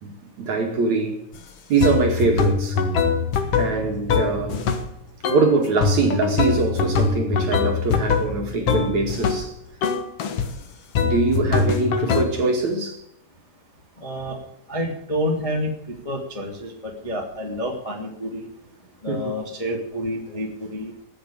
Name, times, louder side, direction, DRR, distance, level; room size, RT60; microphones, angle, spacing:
voice 1, 0.0-1.2 1.7-2.8 3.6-4.6 5.3-9.5 11.0-13.0 19.1-19.2, right 3 dB, 50° right, 2.8 m, -23 dB
sound 1, 1.3-1.4 1.8-4.9 5.2-5.5 5.8-9.5 9.8-10.5 11.0-12.2, left 5 dB, 80° left, 1.3 m, -23 dB
voice 2, 14.0-14.4 14.7-18.5 19.0-20.9, equal, 15° left, 1.4 m, -29 dB
20.0 x 7.4 x 8.7 m
omnidirectional pair, 4.8 m